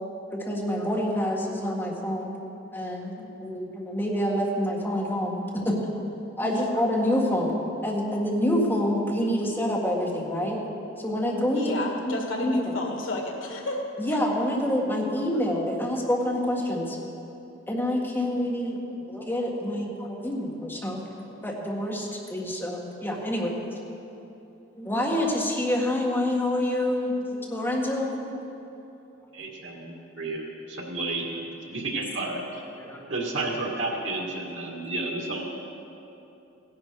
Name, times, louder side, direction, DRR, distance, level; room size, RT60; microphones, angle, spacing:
voice 1, 0.3-2.4 2.7-5.8 6.4-10.6 11.0-11.8 12.1-12.8 14.0-17.0 17.7-18.8 19.1-21.1 21.4-23.5 24.8-28.2 29.7-29.8 32.8-33.0, left 1 dB, 10° left, -3 dB, 1.7 m, -27 dB
voice 2, 11.5-13.8, left 2 dB, 75° left, 1 dB, 1.9 m, -32 dB
voice 3, 29.3-30.4 30.7-32.4 33.1-35.5, right 2 dB, 75° right, 0 dB, 2.1 m, -31 dB
16.5 x 11.0 x 4.7 m, 2.9 s
head